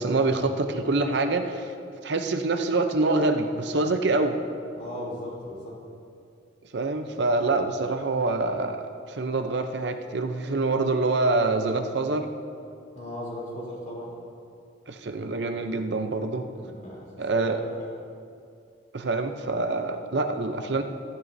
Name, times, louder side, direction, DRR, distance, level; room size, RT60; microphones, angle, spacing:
voice 1, 0.0-1.7 2.0-4.4 6.7-12.3 14.9-16.5 17.2-17.6 18.9-20.8, right 3 dB, 60° right, 6 dB, 0.7 m, -26 dB
voice 2, 4.7-5.9 12.9-14.2 16.5-18.0, left 1 dB, 40° left, -4 dB, 3.4 m, -37 dB
14.5 x 14.5 x 2.7 m, 2.4 s
head